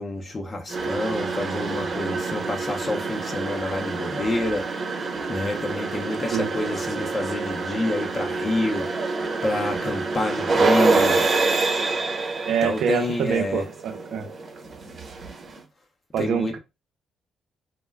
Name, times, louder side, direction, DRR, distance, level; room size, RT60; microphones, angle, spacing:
voice 1, 0.0-4.6 5.3-8.9 9.4-11.3 12.6-13.6 16.2-16.5, left 2 dB, 35° left, 0.5 m, -28 dB
sound 1, 0.7-15.6, right 3 dB, 45° right, 0.9 m, -27 dB
voice 2, 12.5-14.3 16.1-16.6, right 8 dB, 75° right, 0.6 m, -25 dB
2.2 x 2.1 x 3.3 m
cardioid pair, 90°, 0 cm